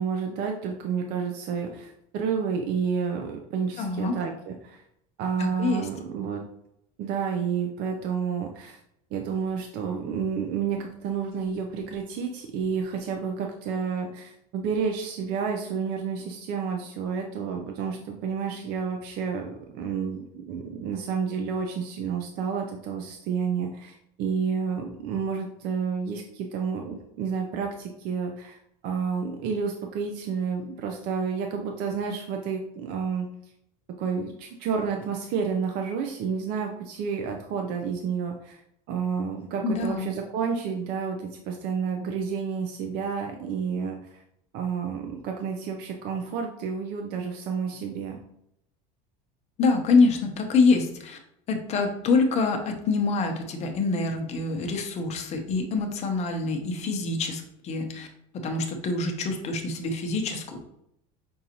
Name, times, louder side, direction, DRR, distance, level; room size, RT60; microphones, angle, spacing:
voice 1, 0.0-4.8 5.2-6.4 7.0-8.8 9.1-33.3 34.0-38.6 38.9-44.2 44.5-48.2, right 6 dB, 55° right, 3 dB, 0.5 m, -30 dB
voice 2, 3.8-4.1 5.4-5.9 39.6-40.1 49.6-51.2 51.5-58.1 58.3-60.6, left 4 dB, 35° left, 4 dB, 0.7 m, -25 dB
5.3 x 2.5 x 2.9 m, 0.77 s
supercardioid pair, 135°, 19 cm